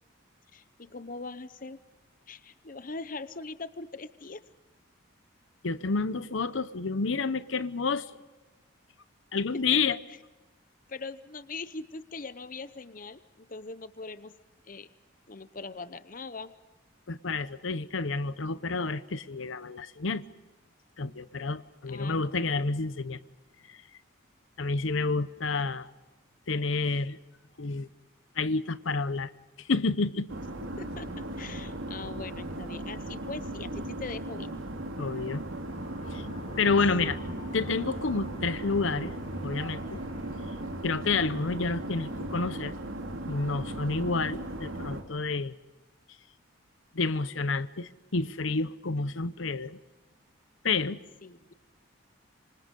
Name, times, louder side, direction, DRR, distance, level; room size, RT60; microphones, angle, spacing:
voice 1, 0.5-1.8 2.3-4.4 10.9-14.3 14.7-14.9 15.3-16.5 21.9-22.2 25.6-25.7 30.8-34.5 51.2-51.5, left 3 dB, 40° left, 13 dB, 0.8 m, -41 dB
voice 2, 5.6-8.1 9.3-10.0 17.1-20.2 21.0-23.2 23.7-23.8 24.6-25.9 26.5-27.2 27.6-27.9 28.4-29.3 29.6-30.3 35.0-35.4 36.1-36.2 36.6-37.2 37.5-39.1 39.4-40.0 40.8-42.7 43.3-45.5 46.9-49.8 50.6-51.0, left 4 dB, 70° left, 14 dB, 0.9 m, -29 dB
sound 1, 30.3-45.0, right 1 dB, 75° right, 2.9 m, -37 dB
sound 2, 35.7-42.4, equal, 25° left, 4.2 m, -45 dB
26.5 x 25.5 x 5.3 m, 1.2 s
head